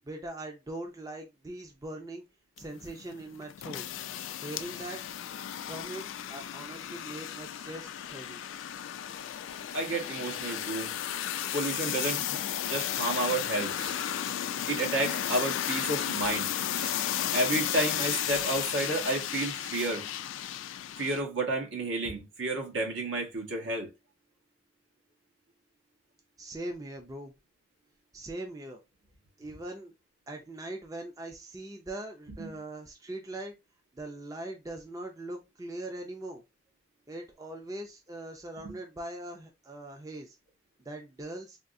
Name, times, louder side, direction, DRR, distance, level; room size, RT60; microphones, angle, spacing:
voice 1, 0.0-2.2 2.6-3.9 4.4-5.0 5.6-8.4 26.4-27.3 28.1-28.8 29.4-29.9 30.3-33.5 33.9-36.4 37.1-40.4 40.8-41.6, right 1 dB, 20° right, 0.4 m, -41 dB
sound 1, 2.6-21.2, left 11 dB, 75° left, 0.3 m, -34 dB
voice 2, 9.7-10.9 11.5-13.7 14.7-16.5 17.3-20.0 21.0-23.9 32.4-32.5 38.6-38.7, right 2 dB, 80° right, 1.2 m, -31 dB
sound 2, 13.6-14.1 15.1-15.6 16.3-17.1 18.1-18.6 19.7-20.0, right 3 dB, 45° right, 1.4 m, -46 dB
3.5 x 2.4 x 2.5 m
head